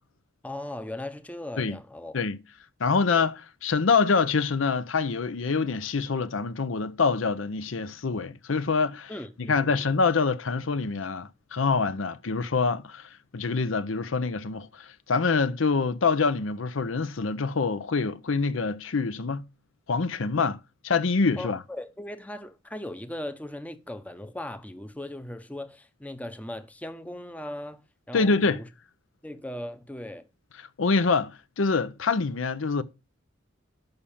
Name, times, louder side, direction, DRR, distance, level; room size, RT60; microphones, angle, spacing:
voice 1, 0.4-2.2 9.1-9.9 21.4-27.8 28.1-28.7 29.2-30.3, left 1 dB, 10° left, 0.7 m, -38 dB
voice 2, 2.8-9.1 9.4-19.5 19.9-20.6 20.8-21.6 28.1-28.6 30.8-32.8, left 4 dB, 80° left, 0.7 m, -25 dB
6.6 x 5.6 x 7.1 m
head